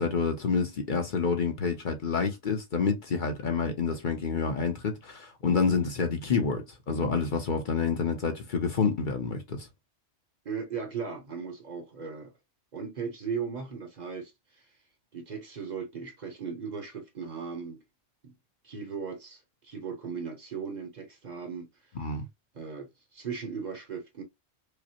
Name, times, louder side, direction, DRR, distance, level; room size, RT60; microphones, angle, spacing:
voice 1, 0.0-9.7 22.0-22.2, left 5 dB, 50° left, 0.8 m, -28 dB
voice 2, 10.4-12.3 12.7-14.7 15.1-17.8 18.2-18.3 18.6-21.7 22.5-24.2, right 6 dB, 45° right, 1.0 m, -37 dB
4.9 x 2.1 x 2.9 m
omnidirectional pair, 1.1 m